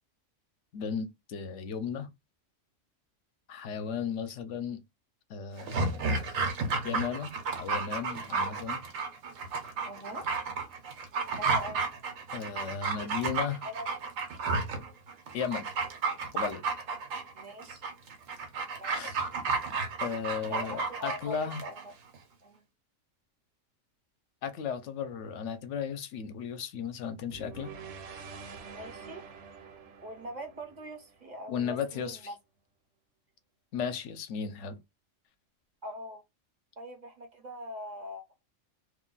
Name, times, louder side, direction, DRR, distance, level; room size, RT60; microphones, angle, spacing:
voice 1, 0.7-2.1 3.5-4.8 5.3-6.3 6.8-7.3 7.5-8.8 12.3-13.6 15.3-15.7 16.3-16.7 18.9-19.1 20.0-21.6 24.4-27.7 31.5-32.3 33.7-34.8, left 7 dB, 70° left, 0.9 m, -35 dB
Dog, 5.6-21.8 22.1-22.2, right 4 dB, 85° right, 1.1 m, -32 dB
voice 2, 9.8-10.3 11.3-11.9 13.6-13.9 17.3-17.8 18.8-19.3 20.5-21.8 22.4-22.6 28.7-29.2 30.0-32.4 35.8-36.2 36.8-38.4, equal, 50° right, 0.5 m, -42 dB
sound 1, 27.3-31.5, right 5 dB, 70° right, 0.9 m, -46 dB
2.6 x 2.2 x 3.8 m
omnidirectional pair, 1.3 m